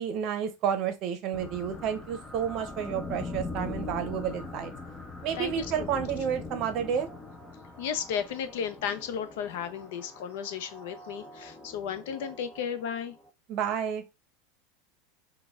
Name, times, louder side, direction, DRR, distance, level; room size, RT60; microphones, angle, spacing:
voice 1, 0.0-4.7 5.2-7.1 13.5-14.0, right 8 dB, 45° right, 0.7 m, -30 dB
sound 1, 1.3-13.3, left 3 dB, 15° left, 0.5 m, -42 dB
voice 2, 5.4-6.1 7.8-13.1, left 8 dB, 70° left, 0.6 m, -34 dB
4.1 x 2.2 x 3.6 m
supercardioid pair, 150°, 0 cm